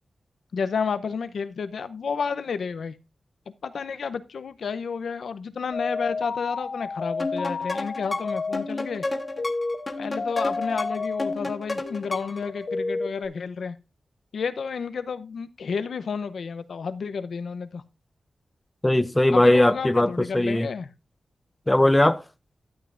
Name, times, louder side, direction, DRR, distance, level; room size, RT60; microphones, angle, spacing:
voice 1, 0.5-2.9 3.6-9.0 10.0-13.8 14.3-17.8 19.3-20.9, left 5 dB, 85° left, 0.7 m, -31 dB
sound 1, 5.7-11.3 11.8-13.3, left 3 dB, 55° left, 1.4 m, -31 dB
sound 2, 7.2-12.5, left 2 dB, 30° left, 1.3 m, -32 dB
voice 2, 18.8-20.7 21.7-22.2, left 1 dB, 15° left, 0.6 m, -19 dB
12.5 x 8.1 x 2.5 m
wide cardioid pair, 100°, 0 cm